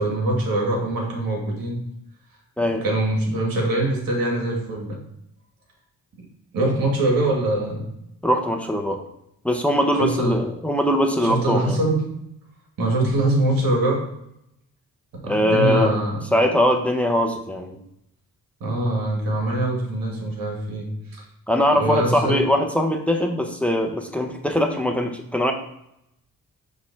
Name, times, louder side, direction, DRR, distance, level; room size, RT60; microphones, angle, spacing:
voice 1, 0.0-1.8 2.8-5.0 6.5-7.9 10.0-10.4 11.2-12.0 12.8-14.0 15.2-16.2 18.6-20.9 21.7-22.4, right 2 dB, 80° right, -1 dB, 2.4 m, -23 dB
voice 2, 8.2-9.0 9.4-11.8 15.2-15.9 16.3-17.8 21.5-25.5, equal, 5° left, 4 dB, 1.0 m, -21 dB
6.4 x 3.7 x 6.2 m, 0.79 s
cardioid pair, 80°, 34 cm